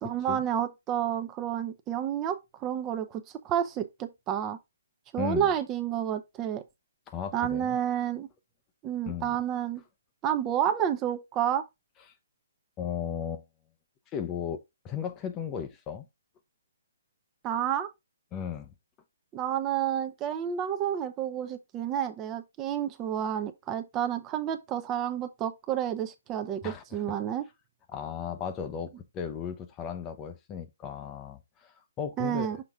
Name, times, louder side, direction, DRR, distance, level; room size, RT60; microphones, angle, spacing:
voice 1, 0.0-4.6 5.1-6.6 7.3-8.3 8.8-9.8 10.2-11.6 17.4-17.9 19.3-27.4 32.2-32.6, right 10 dB, 20° right, 0.6 m, -30 dB
voice 2, 5.2-5.5 7.1-7.8 9.1-9.4 12.8-13.4 14.1-16.1 18.3-18.7 26.6-27.1 27.9-32.6, left 8 dB, 20° left, 0.7 m, -36 dB
5.9 x 4.8 x 3.5 m
hypercardioid pair, 155°, 0 cm